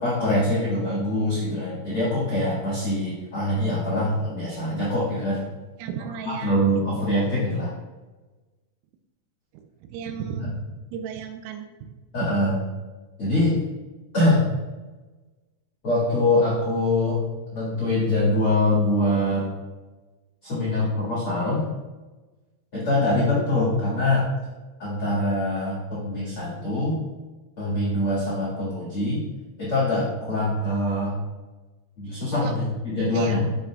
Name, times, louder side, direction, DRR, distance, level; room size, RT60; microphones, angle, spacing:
voice 1, 0.0-5.4 6.2-7.7 10.4-10.5 12.1-12.6 13.2-13.5 14.1-14.5 15.8-17.2 17.5-19.5 20.4-21.6 22.7-24.2 24.8-27.0 27.6-29.2 29.6-31.1 32.0-33.4, left 1 dB, 60° left, -7 dB, 1.4 m, -24 dB
voice 2, 5.8-6.9 9.5-10.6 10.9-11.7 12.2-12.3 32.4-32.6 33.1-33.5, right 8 dB, 85° right, 6 dB, 3.2 m, -34 dB
8.2 x 6.7 x 2.4 m, 1.2 s
omnidirectional pair, 5.8 m